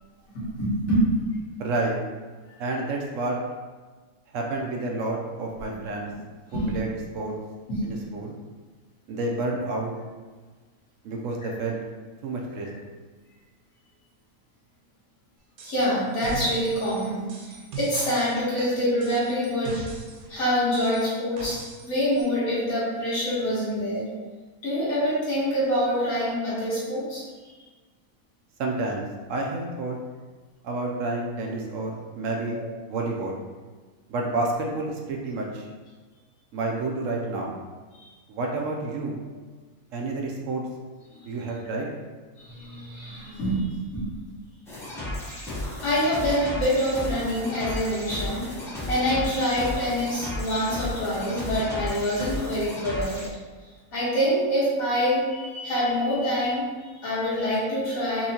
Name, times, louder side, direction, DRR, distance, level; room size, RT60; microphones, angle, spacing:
voice 1, 0.3-1.0 6.5-6.6 7.7-7.8 15.6-19.8 20.3-24.1 24.6-27.2 32.5-32.6 37.9-38.1 41.1-41.3 42.4-44.0 45.8-48.5 48.9-53.3 53.9-58.3, equal, 75° left, -9 dB, 1.8 m, -26 dB
voice 2, 1.6-1.9 2.6-3.4 4.3-6.1 6.5-6.9 7.1-7.3 7.8-8.4 9.1-9.9 11.0-11.8 12.2-12.8 28.6-30.0 30.6-32.6 32.9-33.4 34.1-35.7 36.5-37.6 38.3-39.2 39.9-40.6 41.2-41.9, right 2 dB, 70° right, 0 dB, 0.9 m, -29 dB
sound 1, 15.6-15.9 16.1-20.3 20.7-21.9 22.1-22.2, right 3 dB, 90° right, 1.1 m, -39 dB
sound 2, 44.7-53.3, left 1 dB, 5° left, 0.5 m, -34 dB
4.2 x 2.7 x 2.8 m, 1.4 s
omnidirectional pair, 1.5 m